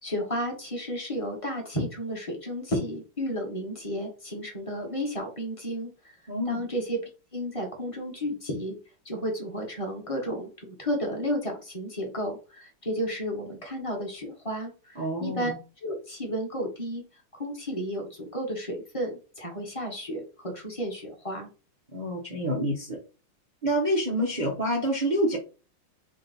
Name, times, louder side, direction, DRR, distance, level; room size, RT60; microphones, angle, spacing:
voice 1, 0.0-6.2 6.4-7.0 7.3-8.8 9.0-15.5 15.8-17.0 17.3-21.5, equal, 20° left, 1 dB, 1.1 m, -32 dB
voice 2, 6.3-6.6 15.0-15.6 21.9-23.0 23.6-25.4, equal, 60° right, -2 dB, 0.4 m, -27 dB
4.6 x 2.7 x 4.0 m, 0.34 s
omnidirectional pair, 2.0 m